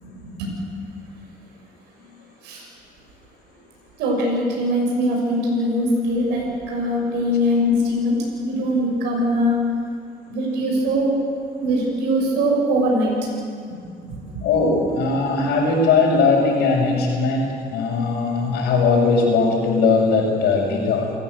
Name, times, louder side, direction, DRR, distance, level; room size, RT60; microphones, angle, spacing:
voice 1, 0.2-0.5 2.4-2.7 4.0-9.6 10.3-11.1 11.6-13.1 13.8-14.4, equal, 90° right, -2 dB, 6.7 m, -22 dB
voice 2, 14.4-21.1, left 4 dB, 80° left, -6 dB, 5.7 m, -19 dB
29.0 x 15.5 x 8.2 m, 2.3 s
cardioid pair, 110°, 17 cm